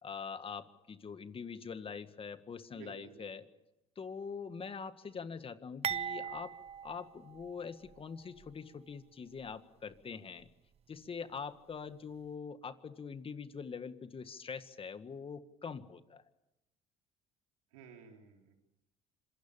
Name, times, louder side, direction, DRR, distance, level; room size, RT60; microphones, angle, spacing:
voice 1, 0.0-3.4 4.0-6.5 6.8-10.5 10.9-16.2, left 6 dB, 35° left, 11 dB, 1.8 m, -44 dB
voice 2, 2.7-3.3 17.7-18.5, right 7 dB, 85° right, 2 dB, 4.6 m, -54 dB
sound 1, 5.8-8.0 8.4-8.5 9.4-9.5, right 8 dB, 40° right, 0.9 m, -40 dB
26.5 x 23.0 x 7.3 m, 0.91 s
hypercardioid pair, 70°, 16 cm